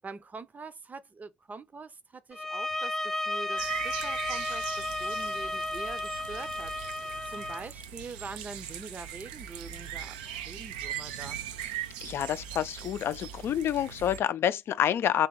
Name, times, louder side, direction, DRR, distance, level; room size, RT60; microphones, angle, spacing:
voice 1, 0.0-10.2 10.5-11.4, right 4 dB, 35° right, 0.6 m, -44 dB
sound 1, 2.3-7.7, left 2 dB, 5° left, 0.5 m, -33 dB
sound 2, 3.6-14.2, right 9 dB, 85° right, 0.4 m, -40 dB
voice 2, 12.0-15.3, left 10 dB, 60° left, 0.4 m, -28 dB
3.5 x 2.9 x 3.6 m
hypercardioid pair, 50°, 5 cm